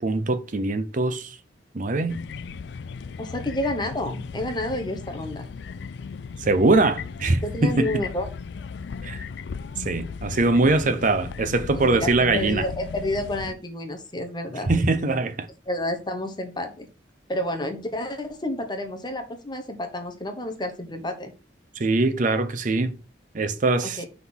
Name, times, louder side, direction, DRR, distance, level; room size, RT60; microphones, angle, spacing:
voice 1, 0.0-1.4 1.7-2.2 6.4-8.0 9.0-9.2 9.8-12.7 14.7-15.5 21.7-23.0 23.3-24.0, right 3 dB, 45° right, 0.6 m, -22 dB
sound 1, 2.1-13.5, left 5 dB, 60° left, 0.3 m, -36 dB
voice 2, 3.2-5.5 7.4-8.3 11.8-14.7 15.7-16.9 17.3-21.3 23.8-24.1, left 1 dB, 25° left, 1.0 m, -30 dB
5.7 x 3.8 x 6.1 m
head